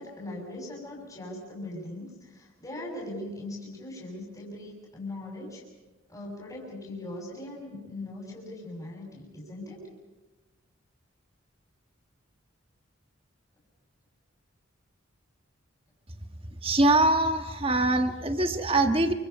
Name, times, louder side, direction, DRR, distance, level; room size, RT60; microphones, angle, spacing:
voice 1, 0.0-5.6 6.1-9.8, left 1 dB, 15° left, -4 dB, 6.1 m, -40 dB
voice 2, 16.6-19.1, right 2 dB, 25° right, 7 dB, 1.4 m, -23 dB
29.5 x 24.5 x 5.6 m, 1.2 s
head